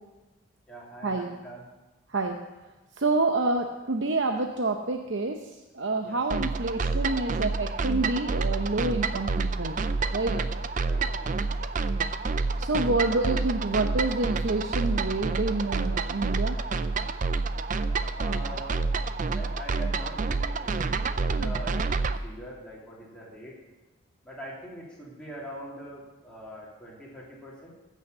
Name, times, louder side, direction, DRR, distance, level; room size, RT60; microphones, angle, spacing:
voice 1, 0.7-1.6 6.0-6.2 10.2-10.5 10.8-11.3 18.2-18.8 19.3-23.5 24.2-27.7, equal, 5° left, -6 dB, 3.1 m, -43 dB
voice 2, 3.0-5.5 5.7-9.8 10.1-10.3 12.6-16.6, right 2 dB, 60° right, 4 dB, 0.7 m, -28 dB
sound 1, 6.3-22.2, right 3 dB, 40° right, 0.4 m, -28 dB
15.0 x 6.3 x 6.8 m, 1.1 s
head